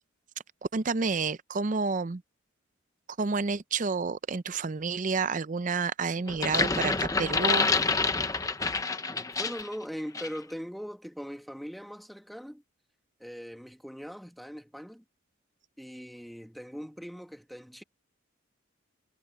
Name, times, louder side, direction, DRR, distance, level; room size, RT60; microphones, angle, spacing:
voice 1, 0.7-2.2 3.2-7.7, right 4 dB, 40° right, 0.5 m, -29 dB
sound 1, 6.3-9.7 10.1-10.4, left 4 dB, 15° left, 0.8 m, -27 dB
voice 2, 9.4-12.6 13.2-15.0 15.8-17.8, equal, ahead, 1.8 m, -40 dB
head